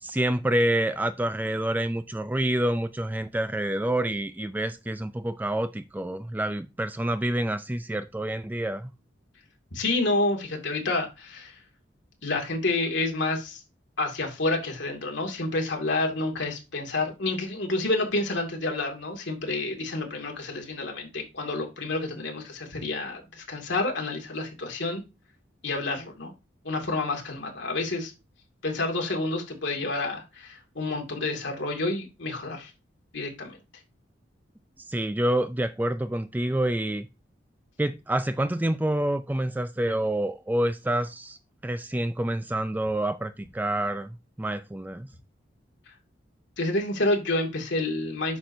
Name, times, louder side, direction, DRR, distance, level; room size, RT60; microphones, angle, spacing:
voice 1, 0.0-8.9 34.9-37.1 37.8-41.4 41.6-45.1, right 1 dB, 10° right, 0.3 m, -27 dB
voice 2, 9.7-11.6 12.2-13.6 14.0-25.0 25.6-26.3 26.6-28.1 28.6-32.7 33.1-33.6 46.6-48.4, left 2 dB, 70° left, 2.1 m, -29 dB
8.4 x 6.2 x 2.6 m
head